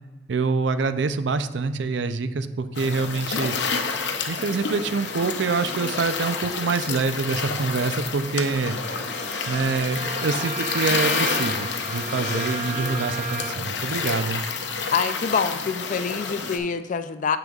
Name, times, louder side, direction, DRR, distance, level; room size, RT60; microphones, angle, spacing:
voice 1, 0.3-3.6 4.3-8.8 9.5-14.4, right 4 dB, 75° right, 11 dB, 0.5 m, -26 dB
sound 1, 2.8-16.6, left 5 dB, 70° left, 0.7 m, -29 dB
Bowed string instrument, 8.8-13.8, right 4 dB, 50° right, 0.9 m, -34 dB
voice 2, 14.9-17.4, left 6 dB, 45° left, 11 dB, 0.4 m, -25 dB
9.6 x 6.8 x 2.4 m, 1.1 s
head